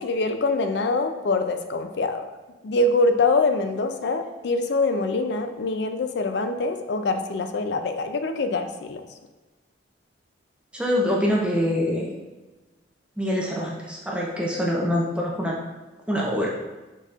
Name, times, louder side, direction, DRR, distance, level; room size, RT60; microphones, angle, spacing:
voice 1, 0.0-2.3 2.6-9.0, left 3 dB, 65° left, 7 dB, 0.4 m, -24 dB
voice 2, 10.7-12.2 13.2-15.6 16.1-16.5, equal, 5° right, -3 dB, 0.5 m, -25 dB
5.3 x 4.1 x 2.4 m, 1.2 s
head